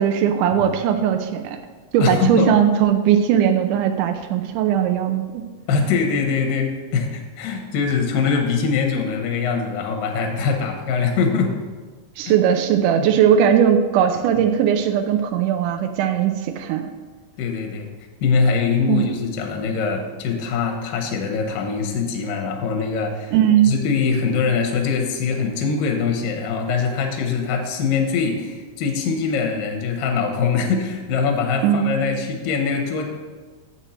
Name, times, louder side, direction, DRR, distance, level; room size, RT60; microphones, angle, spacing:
voice 1, 0.0-1.6 1.9-5.4 12.2-16.9 18.9-19.0 23.3-23.8 31.6-32.0, right 9 dB, 90° right, 5 dB, 1.8 m, -19 dB
voice 2, 2.0-2.5 5.7-11.5 12.3-12.4 13.0-13.1 17.4-17.9 18.2-23.3 23.6-33.1, left 5 dB, 75° left, 3 dB, 2.6 m, -22 dB
8.0 x 6.1 x 4.3 m, 1.4 s
omnidirectional pair, 4.2 m